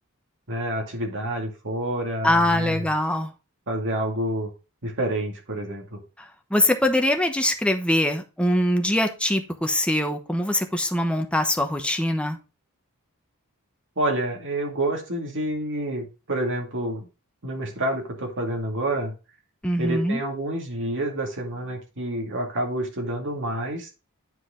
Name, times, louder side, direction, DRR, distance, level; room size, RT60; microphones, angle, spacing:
voice 1, 0.5-2.9 3.7-4.5 4.8-6.0 14.0-17.1 17.4-19.1 19.8-23.9, right 1 dB, 60° right, 2.3 m, -28 dB
voice 2, 2.2-3.3 6.5-12.4 19.6-20.2, left 1 dB, 5° left, 0.9 m, -23 dB
9.4 x 4.8 x 3.8 m
head